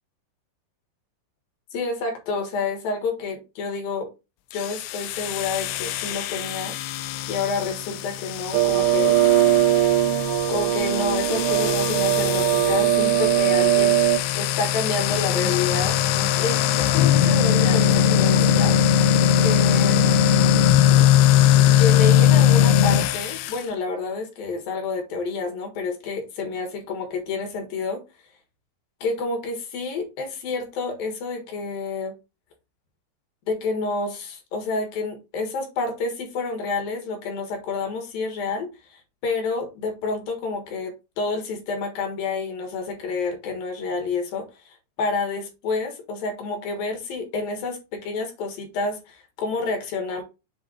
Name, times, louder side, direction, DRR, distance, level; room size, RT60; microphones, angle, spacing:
voice 1, 1.7-4.1 4.5-6.8 7.3-9.2 10.5-14.0 14.3-18.8 19.4-20.0 21.8-28.0 29.0-32.1 33.5-50.2, left 4 dB, 65° left, 2.9 m, -29 dB
sound 1, 4.5-23.6, left 10 dB, 90° left, 2.8 m, -20 dB
sound 2, 8.5-14.2, right 15 dB, 90° right, 2.8 m, -20 dB
sound 3, 15.0-20.5, left 1 dB, 35° left, 0.4 m, -36 dB
7.5 x 3.7 x 3.9 m
omnidirectional pair, 4.8 m